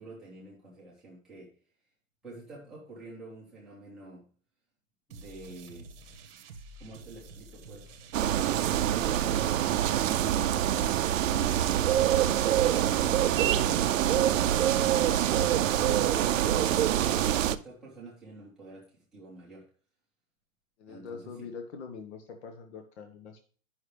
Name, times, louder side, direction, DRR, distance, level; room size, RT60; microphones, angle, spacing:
voice 1, 0.0-1.6 2.2-4.3 5.1-6.0 6.7-12.2 15.0-19.7 20.9-21.5, right 2 dB, ahead, -8 dB, 0.7 m, -48 dB
sound 1, 5.1-12.5, right 3 dB, 45° right, 0.9 m, -48 dB
sound 2, 8.1-17.5, right 11 dB, 70° right, 0.5 m, -25 dB
voice 2, 13.1-13.9 20.8-23.4, left 5 dB, 55° left, 5 dB, 1.0 m, -44 dB
9.7 x 5.7 x 3.3 m, 0.43 s
hypercardioid pair, 175°, 40 cm